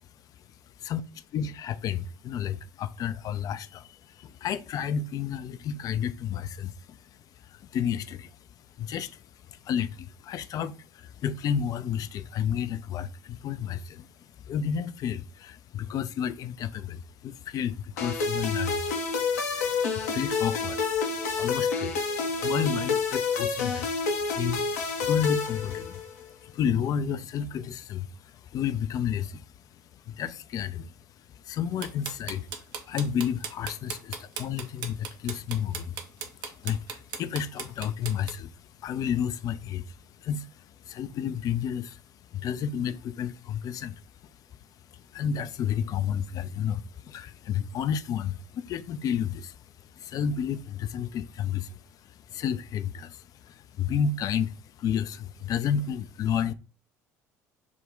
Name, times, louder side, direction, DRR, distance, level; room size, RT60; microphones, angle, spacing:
voice 1, 1.3-7.0 7.4-8.4 8.8-14.1 14.4-18.8 19.9-20.8 21.1-29.4 29.9-30.9 31.3-32.5 32.9-42.0 42.3-44.0 44.9-49.6 49.8-56.5, left 8 dB, 45° left, 0.3 m, -31 dB
sound 1, 18.0-26.2, left 5 dB, 75° left, 0.7 m, -28 dB
sound 2, 31.8-38.3, right 6 dB, 55° right, 0.6 m, -36 dB
3.6 x 2.2 x 3.7 m
figure-of-eight pair, 60°, 9 cm